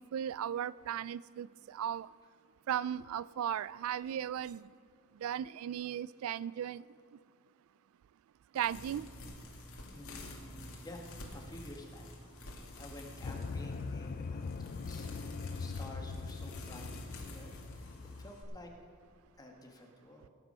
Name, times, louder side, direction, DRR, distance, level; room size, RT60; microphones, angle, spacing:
voice 1, 0.0-2.1 2.7-4.6 5.2-6.8 8.5-9.1, right 9 dB, 80° right, 18 dB, 0.3 m, -36 dB
sound 1, 8.5-18.4, left 1 dB, 90° left, 2.1 m, -49 dB
voice 2, 9.9-11.0 11.3-12.1 12.7-17.9 18.2-18.7 19.4-20.3, left 1 dB, 20° left, 1 dB, 1.4 m, -51 dB
sound 2, 13.2-18.3, left 4 dB, 45° left, 0.4 m, -41 dB
18.0 x 8.2 x 5.5 m, 2.1 s
head